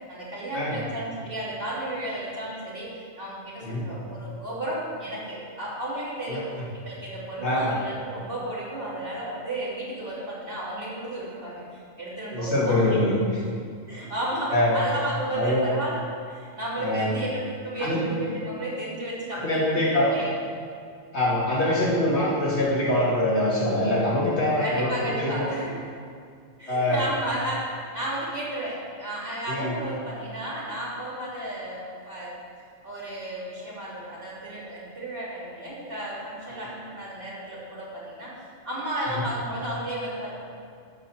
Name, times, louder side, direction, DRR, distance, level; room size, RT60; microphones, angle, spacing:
voice 1, 0.1-6.4 6.7-13.0 13.9-16.0 16.3-20.3 21.6-22.0 24.6-25.7 26.6-27.6 27.9-32.3 32.8-38.3 38.6-40.3, right 1 dB, 40° right, -7 dB, 3.3 m, -33 dB
voice 2, 12.3-13.4 14.5-14.8 15.3-15.6 16.8-17.1 17.8-18.0 19.3-20.1 21.1-25.4 26.7-27.0 29.5-29.8 39.1-39.2, left 1 dB, 55° left, -8 dB, 3.2 m, -24 dB
13.0 x 5.7 x 6.2 m, 2.3 s
omnidirectional pair, 1.4 m